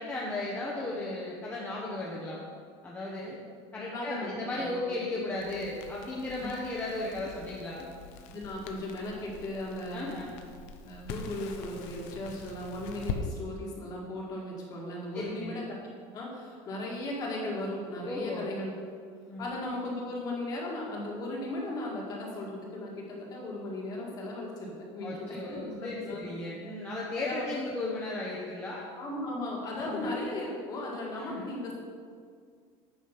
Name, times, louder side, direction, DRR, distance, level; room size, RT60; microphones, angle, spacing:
voice 1, 0.0-2.4 2.8-3.4 3.7-7.9 9.9-10.4 15.1-15.6 18.0-18.5 19.3-19.6 25.0-28.9 29.7-30.1 31.2-31.5, left 2 dB, 15° left, -5 dB, 0.9 m, -35 dB
voice 2, 3.9-4.9 6.4-6.5 8.3-10.1 10.8-15.8 16.0-18.7 19.4-26.3 27.2-27.5 29.0-31.8, left 1 dB, 30° left, -2 dB, 1.8 m, -37 dB
Crackle, 5.3-13.2, left 7 dB, 60° left, 0.8 m, -44 dB
8.6 x 5.1 x 5.8 m, 2.1 s
cardioid pair, 165°, 12 cm